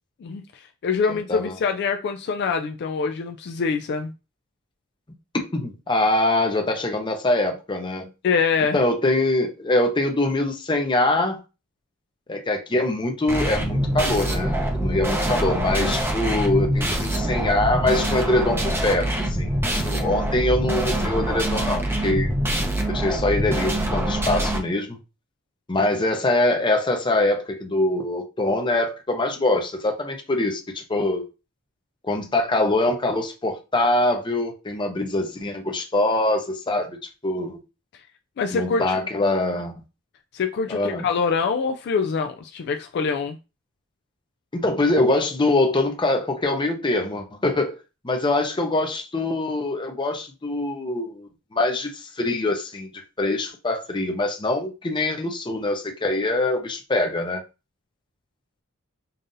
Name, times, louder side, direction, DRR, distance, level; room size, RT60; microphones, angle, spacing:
voice 1, 0.2-4.1 8.2-8.8 38.4-39.0 40.3-43.4, left 5 dB, 55° left, 0.3 m, -25 dB
voice 2, 1.1-1.5 5.5-8.1 8.7-11.4 12.3-22.3 22.9-25.0 25.7-31.2 32.0-37.0 37.2-37.6 38.5-39.7 40.7-41.1 44.5-47.8 48.0-52.9 53.2-57.4, left 2 dB, 25° left, 0.7 m, -23 dB
sound 1, 13.3-24.6, right 1 dB, 10° right, 0.7 m, -24 dB
5.4 x 2.7 x 2.6 m
head